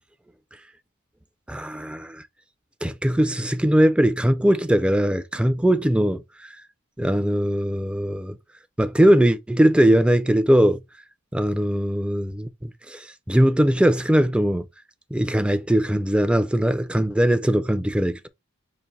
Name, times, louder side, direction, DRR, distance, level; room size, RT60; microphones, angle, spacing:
voice 1, 1.5-2.2 2.8-6.5 7.0-8.4 8.8-10.8 11.3-14.7 15.1-18.3, right 1 dB, 5° right, 0.3 m, -20 dB
5.1 x 2.5 x 4.1 m
head